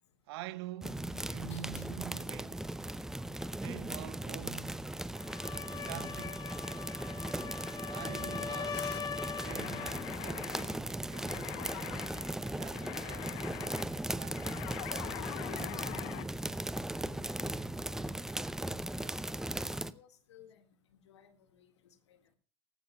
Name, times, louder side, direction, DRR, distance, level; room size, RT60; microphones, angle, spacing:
voice 1, 0.3-2.6 3.5-4.9 5.7-6.5 7.9-8.8 9.4-12.3 12.6-13.4 14.1-14.6, right 15 dB, 60° right, 0.7 m, -47 dB
sound 1, 0.8-19.9, right 1 dB, 5° right, 0.5 m, -38 dB
voice 2, 1.5-1.9 7.6-7.9 8.6-9.0 17.1-18.3 18.6-19.3 19.9-20.6 21.1-21.7 22.1-22.2, left 9 dB, 75° left, 1.7 m, -55 dB
sound 2, 5.1-10.1, left 7 dB, 30° left, 1.1 m, -41 dB
sound 3, 9.4-16.3, left 18 dB, 55° left, 0.8 m, -44 dB
17.5 x 15.0 x 2.2 m
hypercardioid pair, 80°, 15 cm